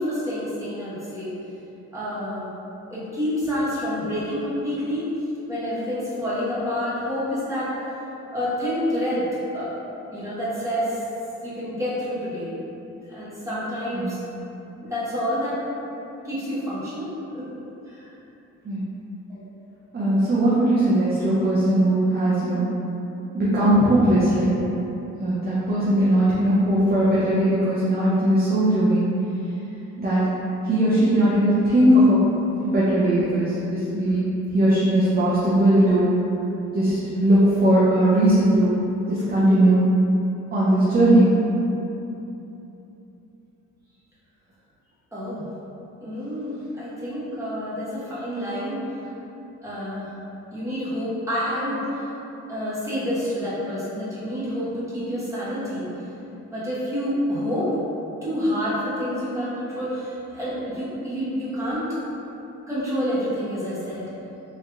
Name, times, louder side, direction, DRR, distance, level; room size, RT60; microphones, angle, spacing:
voice 1, 0.0-1.3 1.9-2.5 2.9-5.1 5.5-7.7 8.3-9.2 9.5-9.7 10.1-11.0 11.4-12.6 13.1-14.2 14.8-15.6 16.2-17.5 17.9-18.1 19.3-19.4 45.1-45.4 46.0-48.8 49.6-50.1 50.5-52.0 52.5-55.9 56.5-57.8 58.2-61.9 62.7-64.0, equal, 10° right, -10 dB, 1.2 m, -28 dB
voice 2, 19.9-22.6 23.3-24.5 25.2-29.1 30.0-30.3 30.6-32.2 32.6-34.3 34.5-36.1 36.7-38.8 39.1-39.8 40.5-41.3, right 1 dB, 30° right, -10 dB, 0.6 m, -19 dB
3.2 x 3.0 x 2.4 m, 3.0 s
cardioid pair, 90°, 30 cm